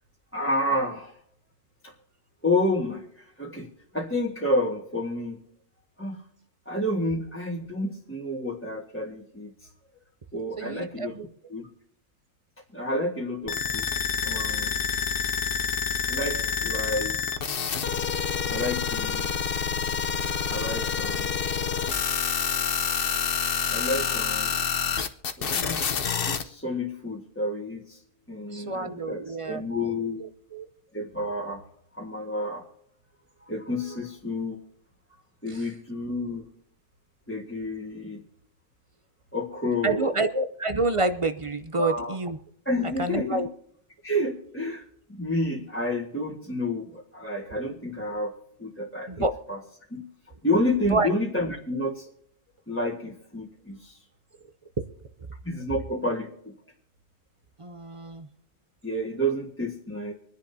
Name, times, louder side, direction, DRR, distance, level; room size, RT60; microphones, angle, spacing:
voice 1, 0.3-1.2 1.8-1.9 2.4-5.4 6.0-6.2 6.7-9.7 10.3-11.2 11.5-11.7 12.7-13.9 14.2-14.8 16.1-17.2 17.8-18.0 18.5-19.3 20.5-21.4 23.7-24.6 25.4-28.0 28.3-30.2 30.9-31.6 31.9-32.7 33.4-34.6 35.4-36.4 37.3-38.2 39.3-40.2 41.7-42.2 42.7-43.5 44.0-48.3 48.6-49.1 49.5-49.6 49.9-50.1 50.4-52.1 52.7-54.0 55.4-56.5 58.8-60.1, left 1 dB, 10° left, -3 dB, 1.6 m, -30 dB
voice 2, 10.6-11.3 20.2-20.5 28.5-29.6 30.2-30.7 35.5-35.6 39.8-42.4 43.0-43.5 49.1-49.3 50.9-51.1 57.6-58.3, right 2 dB, 35° right, 10 dB, 0.6 m, -28 dB
sound 1, 13.5-26.4, left 7 dB, 55° left, 1.0 m, -28 dB
26.0 x 10.5 x 2.7 m, 0.73 s
omnidirectional pair, 1.2 m